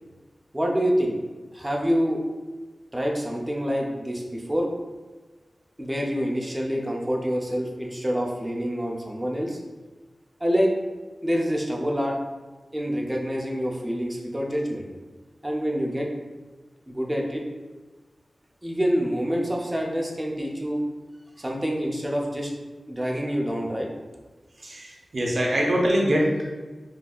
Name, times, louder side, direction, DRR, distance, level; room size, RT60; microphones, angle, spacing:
voice 1, 0.5-1.2 1.5-2.2 2.9-4.7 5.8-9.6 10.4-10.7 11.2-12.2 12.7-14.9 15.4-16.1 16.9-17.4 18.6-20.8 21.4-22.5 22.9-23.9, equal, 15° right, -1 dB, 0.6 m, -26 dB
voice 2, 24.6-26.5, equal, 60° right, -2 dB, 0.7 m, -23 dB
4.0 x 2.7 x 2.4 m, 1.3 s
wide cardioid pair, 75°, 0 cm